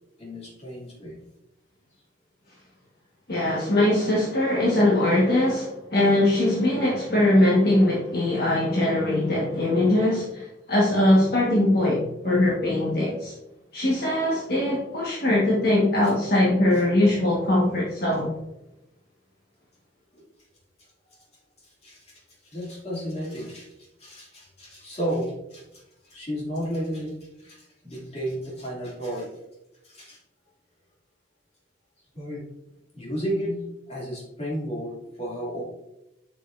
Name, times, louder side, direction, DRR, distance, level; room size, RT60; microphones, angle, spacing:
voice 1, 0.2-1.2 16.0-16.1 20.1-20.3 20.8-21.2 21.6-29.3 29.8-30.2 32.1-32.4 32.9-35.6, equal, 35° left, -4 dB, 2.5 m, -33 dB
voice 2, 3.3-13.3 13.7-18.3, left 1 dB, 60° left, -5 dB, 1.5 m, -21 dB
7.2 x 6.8 x 2.6 m, 0.89 s
head